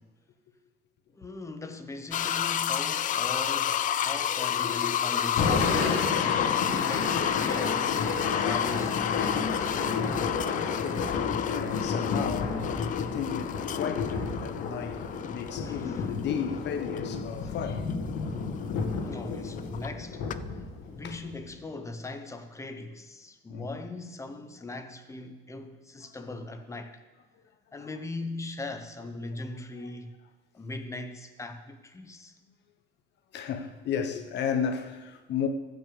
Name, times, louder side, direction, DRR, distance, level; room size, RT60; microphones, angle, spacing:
voice 1, 1.1-6.0 6.6-9.7 15.5-16.1 17.4-17.5 18.9-20.2 20.9-27.0 27.7-30.1 30.5-32.3, left 2 dB, 15° left, 1.0 m, -40 dB
sound 1, 2.1-19.9 20.3-20.4, left 10 dB, 40° left, 0.4 m, -31 dB
Thunder / Rain, 5.4-21.5, left 4 dB, 75° left, 2.1 m, -31 dB
voice 2, 6.2-6.7 10.7-17.9 21.0-21.2 21.8-21.9 23.5-23.8 27.8-27.9 29.8-29.9 33.3-35.5, left 7 dB, 55° left, 1.2 m, -34 dB
15.5 x 6.0 x 7.1 m
cardioid pair, 145°, 21 cm